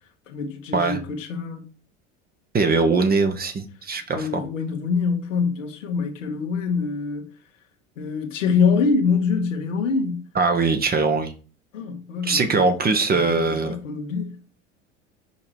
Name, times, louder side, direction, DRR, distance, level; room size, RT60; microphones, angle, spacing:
voice 1, 0.3-1.6 4.1-7.3 8.0-10.3 11.7-12.7 13.1-14.4, left 5 dB, 80° left, 1.5 m, -25 dB
voice 2, 2.5-4.4 10.3-11.3 12.2-13.8, right 4 dB, 25° right, 1.1 m, -21 dB
5.7 x 5.0 x 4.5 m
hypercardioid pair, 75°, 37 cm